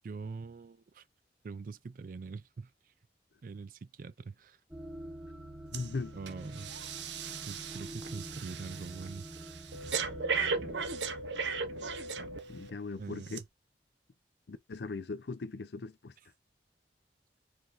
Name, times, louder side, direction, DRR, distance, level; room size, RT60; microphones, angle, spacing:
voice 1, 0.0-1.0 1.4-2.7 3.4-4.6 6.1-6.7 7.5-9.3 13.0-13.3, right 4 dB, 50° right, 0.3 m, -43 dB
sound 1, 4.7-10.8, right 1 dB, 5° right, 1.0 m, -46 dB
voice 2, 5.7-6.2 12.5-13.4 14.5-16.1, left 3 dB, 70° left, 0.5 m, -39 dB
Breathing, 5.7-5.9 6.3-12.7 13.3-13.4, right 5 dB, 80° right, 0.7 m, -37 dB
4.6 x 2.6 x 3.9 m
head